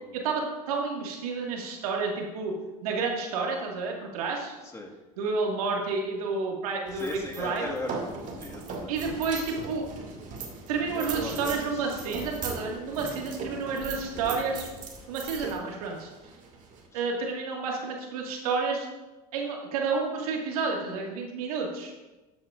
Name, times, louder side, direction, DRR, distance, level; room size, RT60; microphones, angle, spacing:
voice 1, 0.1-2.5 2.8-4.5 5.2-7.8 8.9-9.9 10.7-14.7 15.1-16.1 16.9-18.9 19.3-21.9, right 4 dB, 85° right, 0 dB, 1.8 m, -30 dB
voice 2, 6.9-9.0 10.9-11.7 12.0-12.2 15.5-15.6 16.9-17.0, left 1 dB, 15° left, 0 dB, 1.7 m, -38 dB
sound 1, 6.9-16.9, right 4 dB, 45° right, 2.2 m, -39 dB
12.5 x 8.2 x 2.5 m, 1.1 s
hypercardioid pair, 90°, 19 cm